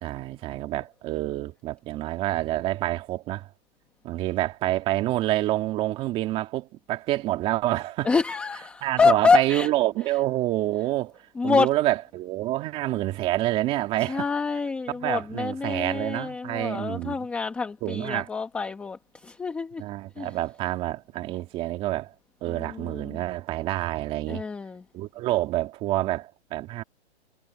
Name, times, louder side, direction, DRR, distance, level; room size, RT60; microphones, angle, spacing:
voice 1, 0.0-3.5 4.0-8.1 8.8-11.1 11.4-14.3 14.9-17.3 17.8-18.3 19.8-22.1 22.4-24.4 24.9-26.8, right 16 dB, 15° right, 2.5 m, -27 dB
voice 2, 8.0-9.7 11.4-11.7 14.1-19.8 20.2-20.3 22.5-23.2 24.3-24.8, left 4 dB, 5° left, 1.1 m, -26 dB
hypercardioid pair, 165°, 33 cm